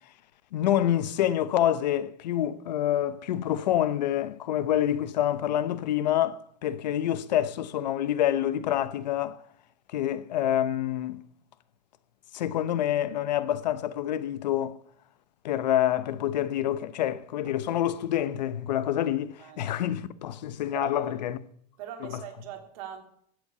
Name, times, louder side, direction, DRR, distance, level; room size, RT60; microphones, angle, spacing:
voice 1, 0.5-9.4 9.9-11.2 12.3-14.8 15.4-21.4 22.0-22.1, left 11 dB, 85° left, 1.0 m, -27 dB
voice 2, 19.4-19.7 20.7-21.1 21.8-23.0, right 10 dB, 55° right, 3.2 m, -40 dB
15.5 x 8.0 x 6.9 m
supercardioid pair, 150°, 21 cm